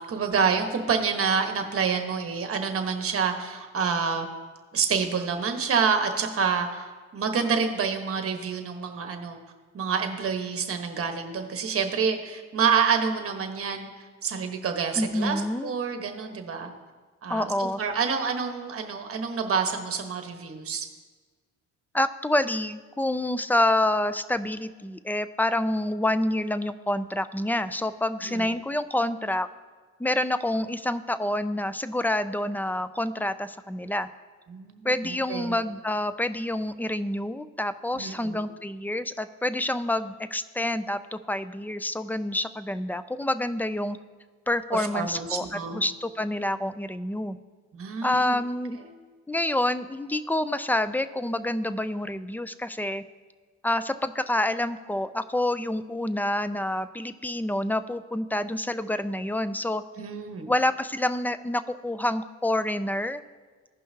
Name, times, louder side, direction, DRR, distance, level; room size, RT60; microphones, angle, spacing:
voice 1, 0.1-4.3 4.7-9.4 9.7-13.9 14.2-16.7 17.2-20.9 28.2-28.5 34.5-35.5 37.9-38.4 44.7-45.8 47.7-48.4 48.9-49.0 60.0-60.5, right 6 dB, 50° right, 5 dB, 1.2 m, -28 dB
voice 2, 15.0-15.7 17.3-17.8 21.9-29.5 30.0-34.1 34.8-44.0 44.5-47.4 48.0-48.8 49.3-53.0 53.6-59.8 60.5-63.2, left 1 dB, 5° left, 13 dB, 0.3 m, -27 dB
16.0 x 5.6 x 2.8 m, 1.4 s
cardioid pair, 90°, 30 cm